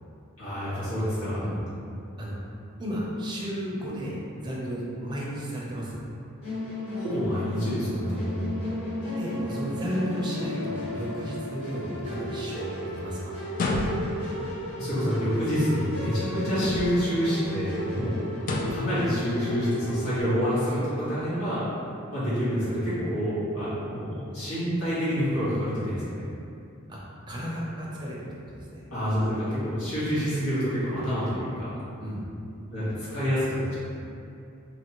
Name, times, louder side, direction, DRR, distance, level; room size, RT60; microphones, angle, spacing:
voice 1, 0.4-1.4 6.9-8.6 14.8-18.1 18.7-21.7 22.1-26.3 28.9-31.7 32.7-33.8, equal, 85° left, -12 dB, 1.3 m, -27 dB
voice 2, 2.2-2.5 2.8-6.0 9.1-13.4 17.8-18.0 26.9-27.0 27.3-28.8 32.0-32.3, equal, 20° right, -5 dB, 0.5 m, -33 dB
Musical instrument, 6.4-20.2, left 1 dB, 55° left, 1.4 m, -34 dB
sound 1, 13.5-14.3 16.5-17.2 18.4-18.9, left 2 dB, 40° left, 0.3 m, -29 dB
3.0 x 2.5 x 2.9 m, 2.6 s
head